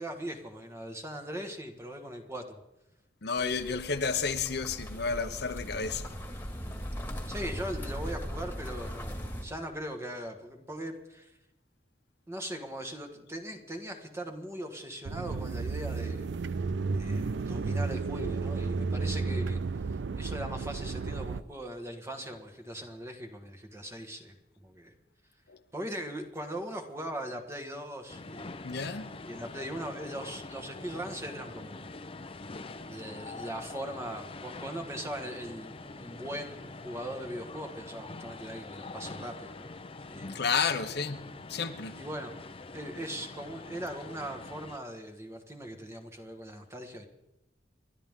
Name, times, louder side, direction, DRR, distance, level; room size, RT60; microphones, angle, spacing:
voice 1, 0.0-2.6 3.4-3.8 7.3-11.3 12.3-16.3 16.9-19.6 19.9-24.9 25.7-28.5 29.3-31.9 32.9-39.7 40.1-40.3 42.0-42.3 42.7-47.1, equal, 15° right, 1.6 m, -40 dB
voice 2, 3.2-6.1 25.5-25.6 28.6-29.1 40.2-42.0, left 5 dB, 65° left, 0.9 m, -31 dB
sound 1, 3.4-9.4, equal, 10° left, 2.0 m, -39 dB
sound 2, 15.0-21.4, right 4 dB, 75° right, 0.5 m, -32 dB
sound 3, 28.1-44.8, left 3 dB, 30° left, 0.7 m, -44 dB
29.5 x 12.0 x 3.7 m
head